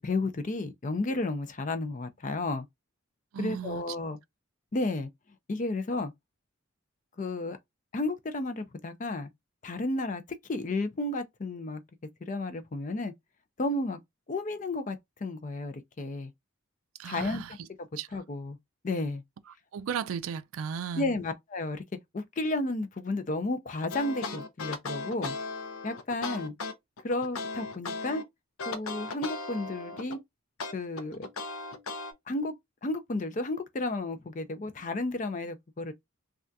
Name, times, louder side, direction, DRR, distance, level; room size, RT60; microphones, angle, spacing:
voice 1, 0.0-2.7 3.4-4.2 4.7-5.1 5.5-6.1 7.2-7.6 7.9-9.3 9.6-10.2 10.5-11.8 12.2-13.1 13.6-14.0 14.3-16.3 17.0-18.6 18.8-19.2 20.9-21.8 22.1-25.3 25.8-26.5 27.0-28.2 28.7-30.2 30.7-31.3 32.3-32.5 32.8-35.9, left 2 dB, 35° left, 0.4 m, -32 dB
voice 2, 3.3-3.8 17.0-17.5 18.0-18.1 19.7-21.2, right 7 dB, 75° right, 0.3 m, -35 dB
sound 1, 23.9-28.2 28.6-30.2 30.6-32.1, left 3 dB, 85° left, 0.6 m, -37 dB
3.4 x 2.3 x 2.6 m
head